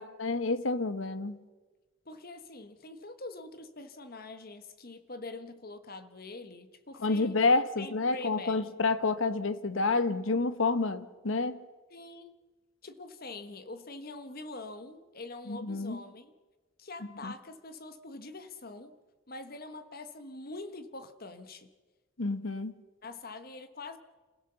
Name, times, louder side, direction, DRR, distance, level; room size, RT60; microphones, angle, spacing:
voice 1, 0.0-1.4 7.0-11.6 15.5-16.0 17.2-17.3 22.2-22.7, left 3 dB, 75° left, 1.1 m, -29 dB
voice 2, 2.0-7.4 7.8-8.7 11.9-12.3 12.8-16.3 16.8-19.0 19.3-21.7 23.0-24.0, left 2 dB, 45° left, 1.4 m, -44 dB
27.5 x 16.5 x 6.9 m
head